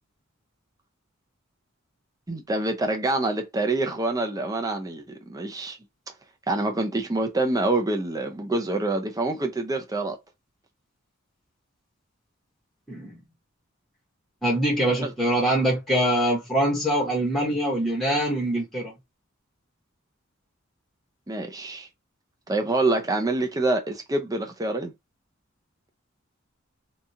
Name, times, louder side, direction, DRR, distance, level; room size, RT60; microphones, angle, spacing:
voice 1, 2.3-5.8 6.5-10.2 15.0-15.1 21.3-21.9 22.5-24.9, right 2 dB, 20° right, 0.6 m, -26 dB
voice 2, 12.9-13.2 14.4-18.9, right 1 dB, ahead, 1.2 m, -24 dB
3.0 x 2.4 x 2.7 m
head